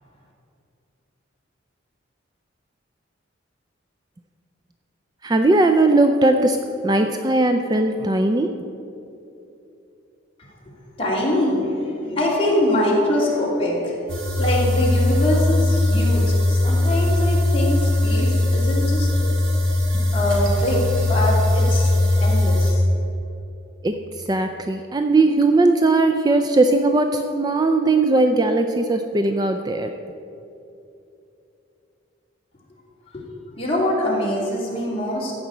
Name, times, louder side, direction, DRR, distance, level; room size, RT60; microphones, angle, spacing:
voice 1, 5.2-8.6 23.8-29.9, right 2 dB, 20° right, 6 dB, 0.4 m, -19 dB
voice 2, 11.0-14.0 14.4-19.3 20.1-22.9 33.1-33.2 33.6-35.3, left 1 dB, 30° left, -4 dB, 2.8 m, -23 dB
sound 1, 14.1-22.7, left 1 dB, 80° right, 2.6 m, -19 dB
15.0 x 5.1 x 8.4 m, 2.8 s
head